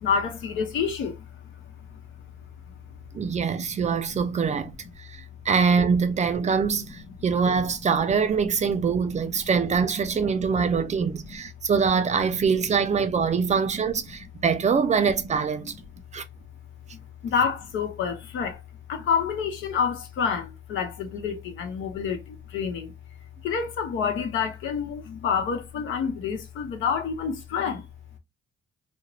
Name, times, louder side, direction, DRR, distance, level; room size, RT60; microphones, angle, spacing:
voice 1, 0.0-1.3 1.9-2.0 3.7-3.8 4.1-4.3 10.5-10.6 11.2-11.4 13.3-13.4 14.1-14.2 16.9-18.6 18.9-22.9 23.4-27.8, left 6 dB, 80° left, 0.8 m, -28 dB
voice 2, 3.1-4.7 5.0-15.7 16.1-16.2, right 6 dB, 35° right, 0.5 m, -24 dB
2.4 x 2.1 x 2.9 m
cardioid pair, 90°, 20 cm